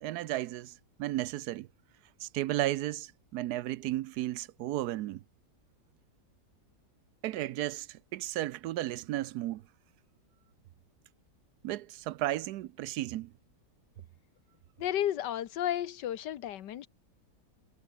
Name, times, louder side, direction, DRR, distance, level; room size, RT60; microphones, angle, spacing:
voice 1, 0.0-1.7 2.2-5.2 7.2-9.6 11.6-13.3, right 15 dB, 75° right, 1.0 m, -34 dB
voice 2, 14.8-16.9, left 11 dB, 85° left, 1.6 m, -32 dB
omnidirectional pair, 1.8 m